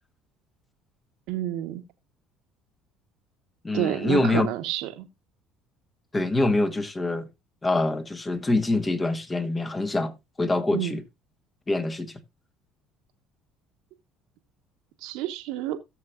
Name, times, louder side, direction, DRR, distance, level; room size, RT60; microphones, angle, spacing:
voice 1, 1.3-1.8 3.7-5.1 10.7-10.9 15.0-15.8, right 13 dB, 75° right, 1.1 m, -29 dB
voice 2, 3.6-4.5 6.1-7.3 7.6-10.1 10.4-11.0 11.7-12.2, left 2 dB, 20° left, 1.4 m, -25 dB
17.0 x 6.7 x 2.4 m
hypercardioid pair, 75°, 0 cm